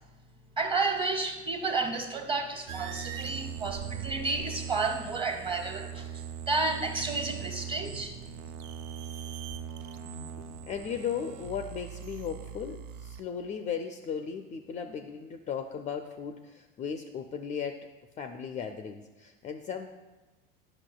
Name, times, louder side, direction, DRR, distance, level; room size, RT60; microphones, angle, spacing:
voice 1, 0.6-8.2, right 3 dB, 20° right, 5 dB, 0.9 m, -31 dB
sound 1, 2.7-13.2, right 8 dB, 50° right, 0.4 m, -40 dB
voice 2, 10.4-17.9 18.2-19.9, left 7 dB, 25° left, 6 dB, 0.4 m, -36 dB
9.8 x 5.8 x 2.2 m, 1.1 s
hypercardioid pair, 80°, 29 cm